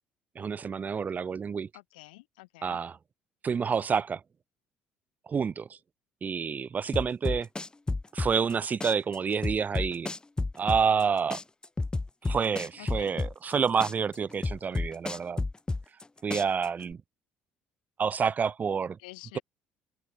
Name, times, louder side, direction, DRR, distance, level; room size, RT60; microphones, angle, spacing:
voice 1, 0.4-1.7 2.6-3.0 3.4-4.2 5.3-5.8 6.2-7.5 8.1-10.1 10.6-11.4 12.2-15.4 16.2-17.0 18.0-19.0, right 6 dB, 35° right, 0.5 m, -28 dB
voice 2, 1.7-2.8 12.8-13.3 19.0-19.4, left 22 dB, 85° left, 4.3 m, -48 dB
sound 1, 6.9-8.5 8.8-11.0 11.3-13.5 13.8-16.0 16.3-16.9, left 3 dB, 20° left, 1.9 m, -31 dB
hypercardioid pair, 70°, 5 cm